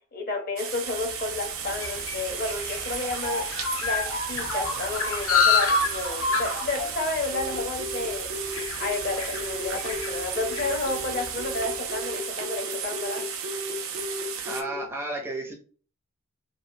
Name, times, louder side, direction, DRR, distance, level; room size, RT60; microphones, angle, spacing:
voice 1, 0.1-3.5 3.8-8.3 8.8-13.2, left 3 dB, 45° left, 3 dB, 0.6 m, -31 dB
sound 1, 0.6-14.6, right 7 dB, 80° right, 0.5 m, -34 dB
sound 2, 1.1-11.7, left 4 dB, 85° left, 0.7 m, -29 dB
Telephone, 7.3-14.7, right 1 dB, 60° left, 1.2 m, -36 dB
voice 2, 14.5-15.5, right 2 dB, 10° right, 1 dB, 0.4 m, -32 dB
3.1 x 2.3 x 2.6 m, 0.41 s
head